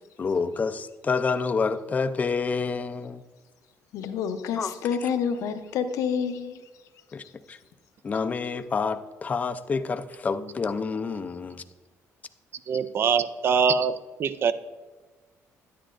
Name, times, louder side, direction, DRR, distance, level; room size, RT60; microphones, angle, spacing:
voice 1, 0.2-3.2 4.5-4.7 5.0-5.1 7.1-7.6 8.0-11.6, left 5 dB, 25° left, 0.4 m, -28 dB
voice 2, 3.9-6.6, left 7 dB, 75° left, 0.7 m, -28 dB
voice 3, 12.7-14.5, right 6 dB, 45° right, 0.4 m, -23 dB
10.0 x 10.0 x 2.5 m
cardioid pair, 130°, 6 cm